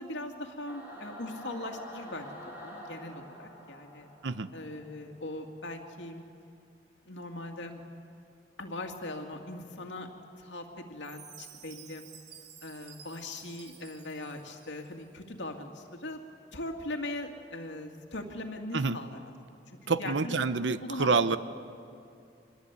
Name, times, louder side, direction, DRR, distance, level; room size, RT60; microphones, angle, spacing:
voice 1, 0.0-2.3 2.6-4.1 4.5-6.2 7.0-7.8 8.6-10.1 10.4-12.1 12.6-16.2 16.5-19.2 19.5-19.6 20.0-20.3 20.6-21.2, left 2 dB, 90° left, 3 dB, 2.3 m, -40 dB
Singing / Musical instrument, 0.7-5.3, equal, 10° right, 4.8 m, -47 dB
Chime, 11.0-15.0, right 9 dB, 70° right, 1.4 m, -52 dB
voice 2, 19.9-21.4, right 4 dB, 90° right, 13 dB, 0.8 m, -27 dB
24.5 x 20.5 x 8.3 m, 2.5 s
head